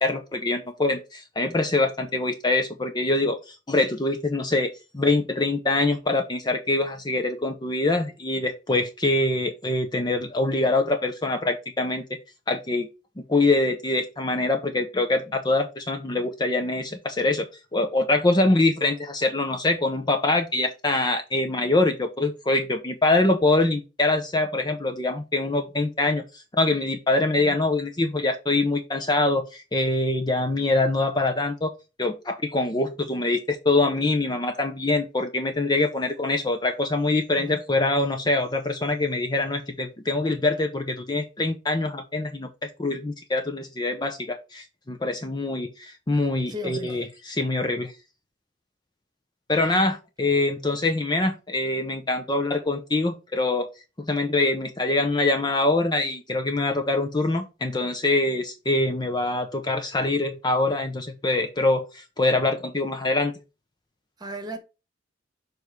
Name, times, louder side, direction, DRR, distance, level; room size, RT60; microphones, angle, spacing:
voice 1, 0.0-4.7 4.9-12.0 12.5-12.9 13.3-17.5 17.7-26.2 26.5-31.7 32.0-47.9 49.5-53.7 54.1-63.3, left 2 dB, 25° left, 0.6 m, -24 dB
voice 2, 46.5-47.1 49.7-49.9 64.2-64.6, equal, 20° right, 1.3 m, -36 dB
7.0 x 3.1 x 4.7 m
head